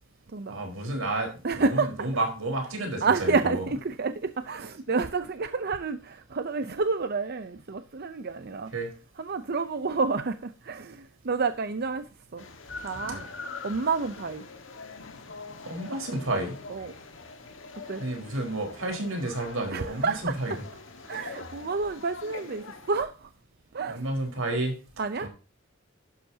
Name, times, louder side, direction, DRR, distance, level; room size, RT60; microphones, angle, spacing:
voice 1, 0.5-3.6 8.7-8.9 13.1-13.2 15.6-16.5 18.0-20.5 23.9-24.7 25.2-25.3, right 2 dB, 90° right, 4.4 m, -31 dB
voice 2, 1.4-2.1 3.0-8.7 9.2-12.4 12.8-13.2 13.6-14.5 16.7-16.9 17.9-18.0 19.7-20.3 21.1-23.3 23.7-24.0 25.0-25.3, right 4 dB, 50° right, 0.6 m, -29 dB
sound 1, 12.4-23.0, left 3 dB, 65° left, 1.6 m, -43 dB
12.0 x 10.0 x 2.8 m
head